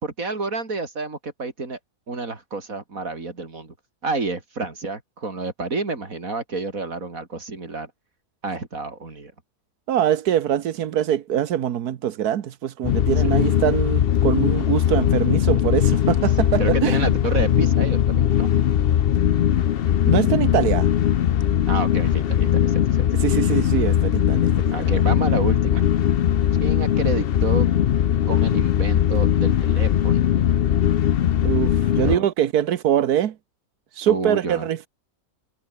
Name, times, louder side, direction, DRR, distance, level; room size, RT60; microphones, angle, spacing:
voice 1, 0.0-1.8 2.1-3.7 4.0-7.9 8.4-9.3 13.2-13.4 16.6-18.5 21.7-23.1 24.7-25.8 26.5-27.7 28.3-30.3 32.0-32.3 34.1-34.7, right 3 dB, 65° right, 4.1 m, -29 dB
voice 2, 9.9-17.1 20.0-20.9 23.1-24.7 31.4-33.3 33.9-34.9, right 10 dB, 90° right, 1.5 m, -23 dB
sound 1, 12.8-32.2, left 10 dB, 55° left, 0.7 m, -20 dB
omnidirectional pair, 1.6 m